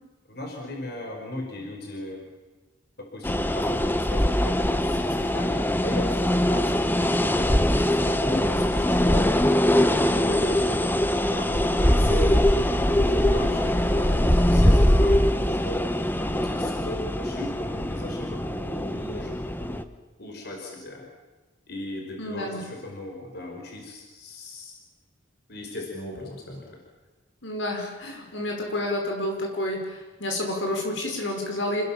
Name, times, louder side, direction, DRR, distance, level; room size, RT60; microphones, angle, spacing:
voice 1, 0.3-2.2 3.0-9.5 9.8-19.8 20.2-21.1 21.7-24.7 25.5-26.8, left 1 dB, 55° left, 1 dB, 4.9 m, -37 dB
sound 1, 3.2-19.8, left 1 dB, 10° left, 1.0 m, -22 dB
voice 2, 22.2-22.6 27.4-31.8, left 1 dB, 75° left, 2 dB, 5.7 m, -29 dB
28.0 x 20.5 x 7.4 m, 1.2 s
head